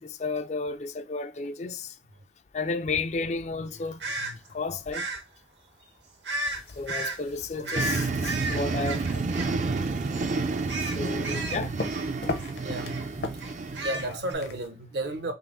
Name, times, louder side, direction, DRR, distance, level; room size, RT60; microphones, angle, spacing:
voice 1, 0.0-2.0 2.5-4.0 4.5-5.1 6.8-9.2 10.8-11.7, left 4 dB, 40° left, 0.3 m, -32 dB
voice 2, 3.7-4.4 7.5-8.1 8.8-9.8 10.1-11.8 12.2-15.3, right 1 dB, 70° right, 0.8 m, -38 dB
sound 1, 4.0-4.3 4.9-5.2 6.2-6.6 6.9-7.2 7.6-9.9 10.1-10.3 10.7-12.5 12.9-13.0 13.4-14.3, right 2 dB, 85° right, 1.3 m, -33 dB
sound 2, 6.5-14.7, left 2 dB, 70° left, 0.7 m, -41 dB
sound 3, 7.8-14.2, right 3 dB, 40° right, 0.3 m, -30 dB
5.5 x 2.0 x 3.6 m
head